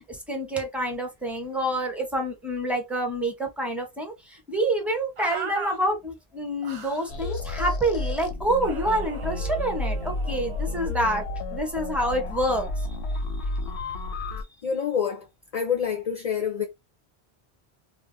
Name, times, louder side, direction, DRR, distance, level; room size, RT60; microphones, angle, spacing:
voice 1, 0.1-4.1 4.5-12.7, right 1 dB, ahead, 0.6 m, -27 dB
sound 1, 5.2-5.8 6.6-7.1 8.6-10.9, right 5 dB, 45° right, 0.4 m, -38 dB
sound 2, 7.1-14.4, left 2 dB, 85° left, 0.8 m, -31 dB
voice 2, 14.6-15.2 15.5-16.7, left 7 dB, 55° left, 0.4 m, -26 dB
2.2 x 2.1 x 3.6 m
omnidirectional pair, 1.1 m